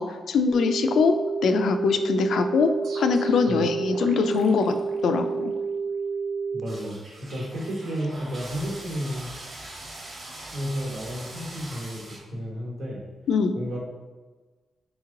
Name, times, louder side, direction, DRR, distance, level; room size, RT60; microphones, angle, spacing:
voice 1, 0.0-4.8 5.0-5.5 13.3-13.5, left 5 dB, 85° left, 7 dB, 0.3 m, -23 dB
sound 1, 0.5-6.6, right 5 dB, 20° right, 0.3 m, -29 dB
sound 2, 2.8-5.6, right 2 dB, 90° right, 0.5 m, -43 dB
voice 2, 6.5-9.3 10.5-13.0 13.5-13.8, equal, 70° right, -3 dB, 1.1 m, -32 dB
sound 3, 6.7-12.2, right 1 dB, 45° right, 1.0 m, -42 dB
3.6 x 3.0 x 3.7 m, 1.3 s
wide cardioid pair, 165°, 0 cm